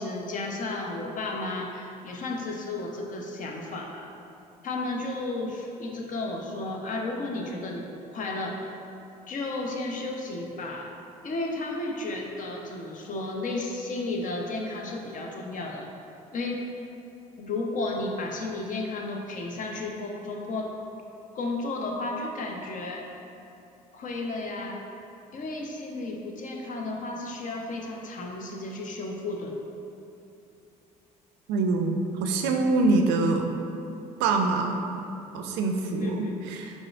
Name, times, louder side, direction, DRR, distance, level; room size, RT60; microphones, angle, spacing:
voice 1, 0.0-4.1 4.6-8.8 9.3-10.9 11.2-15.9 16.3-16.6 17.4-20.7 21.3-23.1 23.9-24.8 25.3-29.6 35.8-36.4, left 2 dB, 45° left, 0 dB, 0.7 m, -33 dB
voice 2, 31.5-33.5 34.2-35.0 35.3-36.8, right 3 dB, 65° right, 3 dB, 0.4 m, -25 dB
4.9 x 4.0 x 2.4 m, 2.8 s
hypercardioid pair, 50°, 19 cm